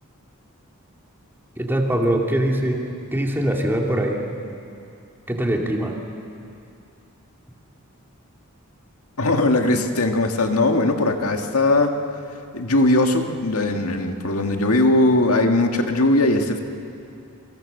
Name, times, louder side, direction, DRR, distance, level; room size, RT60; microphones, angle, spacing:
voice 1, 1.6-2.8 3.1-4.2 5.3-6.0, right 1 dB, 10° right, 0 dB, 2.6 m, -22 dB
voice 2, 9.2-12.0 12.5-16.6, left 2 dB, 80° left, 4 dB, 1.9 m, -19 dB
27.5 x 24.0 x 6.7 m, 2.6 s
head